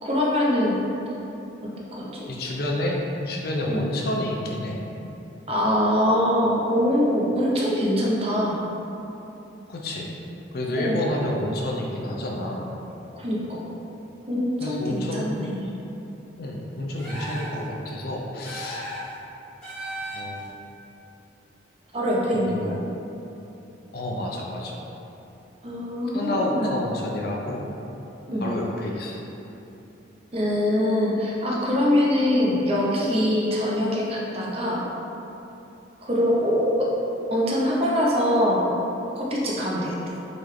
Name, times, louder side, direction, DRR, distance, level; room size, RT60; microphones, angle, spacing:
voice 1, 0.0-0.8 1.6-2.3 3.7-3.8 5.5-8.6 10.7-11.1 13.1-13.6 14.3-15.7 21.9-22.7 25.6-26.8 28.3-28.5 30.3-34.8 36.0-36.9 37.3-38.7 39.1-40.1, equal, 30° right, -4 dB, 0.6 m, -23 dB
voice 2, 2.3-4.8 9.7-10.1 10.5-12.7 14.6-15.4 16.4-18.9 20.1-20.4 22.5-22.7 23.9-24.8 26.1-27.7 28.4-29.2, left 1 dB, 55° left, -1 dB, 0.5 m, -29 dB
sound 1, 17.0-17.6 18.4-19.1 19.6-20.5, right 1 dB, 5° left, 1.4 m, -35 dB
3.8 x 3.2 x 3.2 m, 2.9 s
head